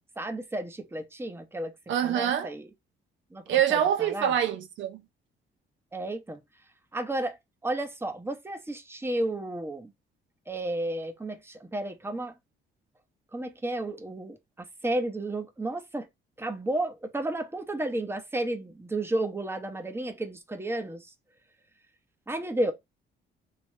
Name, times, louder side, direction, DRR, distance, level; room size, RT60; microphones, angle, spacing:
voice 1, 0.0-1.7 2.0-2.7 3.3-4.3 5.9-6.4 6.9-7.4 7.6-9.9 10.5-12.3 13.3-16.1 16.4-21.1 22.3-22.7, right 1 dB, 10° right, 0.8 m, -32 dB
voice 2, 1.9-2.5 3.5-5.0, right 10 dB, 75° right, 0.6 m, -25 dB
3.3 x 3.0 x 3.2 m
cardioid pair, 90°, 20 cm